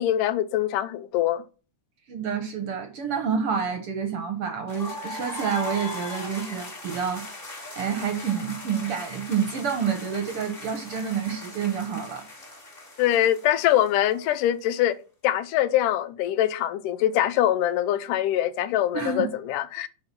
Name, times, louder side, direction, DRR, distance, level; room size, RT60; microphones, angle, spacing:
voice 1, 0.0-1.4 13.0-15.0 15.2-19.9, left 12 dB, 85° left, 2.2 m, -23 dB
voice 2, 2.1-7.2 7.6-12.2 18.9-19.3, right 7 dB, 60° right, 1.6 m, -28 dB
sound 1, 4.7-14.5, left 1 dB, 20° left, 1.7 m, -39 dB
10.5 x 4.3 x 5.9 m
omnidirectional pair, 3.7 m